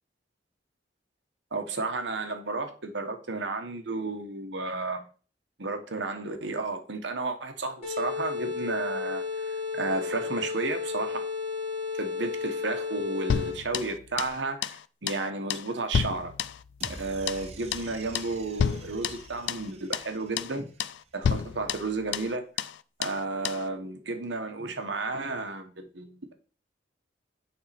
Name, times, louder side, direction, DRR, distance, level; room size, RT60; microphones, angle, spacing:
voice 1, 1.5-5.0 5.6-11.2 12.0-16.3 16.9-20.7 21.1-22.5 23.0-26.3, right 3 dB, 85° right, 1.1 m, -32 dB
sound 1, 7.8-13.8, left 5 dB, 35° left, 2.7 m, -33 dB
sound 2, 13.3-14.4 14.6-14.8 15.1-15.2 15.5-17.0 17.3-17.5 17.7-17.9 18.1-18.3 18.6-19.7 19.9-20.1 20.4-20.5 20.8-21.0 21.2-22.3 22.6-22.7 23.0-23.2 23.4-23.6, left 7 dB, 85° left, 0.3 m, -30 dB
sound 3, 16.8-21.1, right 3 dB, 35° right, 0.8 m, -47 dB
8.9 x 3.6 x 4.2 m
head